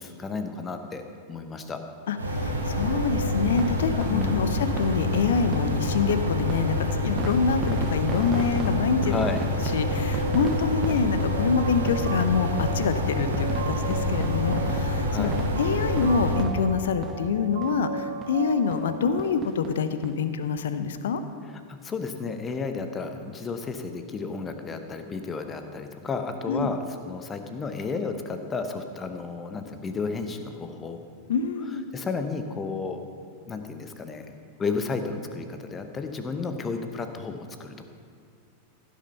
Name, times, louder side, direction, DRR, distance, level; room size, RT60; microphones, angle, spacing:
voice 1, 0.0-1.8 4.1-4.4 9.0-9.4 15.1-15.4 21.7-26.8 27.0-31.0 31.9-33.0 33.5-34.3 34.6-37.8, left 4 dB, 20° left, 7 dB, 1.0 m, -32 dB
voice 2, 2.1-9.2 9.7-15.3 15.6-21.2 26.5-26.7 31.3-31.8, left 5 dB, 60° left, 10 dB, 0.7 m, -26 dB
sound 1, 2.2-16.4, left 1 dB, 80° right, 1.7 m, -27 dB
sound 2, 3.6-17.4 17.6-17.8 18.2-18.3 18.7-18.9 19.2-20.1 20.6-20.7 20.8-20.9, right 5 dB, 25° right, 0.8 m, -38 dB
sound 3, 11.3-19.3, right 7 dB, 60° right, 0.7 m, -37 dB
15.5 x 6.4 x 5.6 m, 2.1 s
figure-of-eight pair, 90°, 0 cm